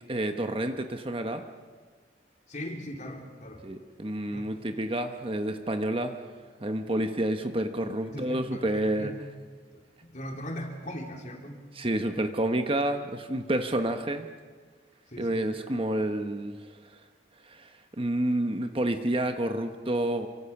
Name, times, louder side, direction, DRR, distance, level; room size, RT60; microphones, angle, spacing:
voice 1, 0.1-1.4 3.6-6.2 6.6-9.1 11.8-14.3 15.2-16.6 17.4-17.7 18.0-20.3, right 1 dB, 30° right, 6 dB, 1.2 m, -29 dB
voice 2, 2.5-3.7 4.3-4.4 8.0-9.2 9.7-11.6 15.1-15.4, equal, 40° left, 1 dB, 3.5 m, -39 dB
28.0 x 24.0 x 6.0 m, 1.6 s
head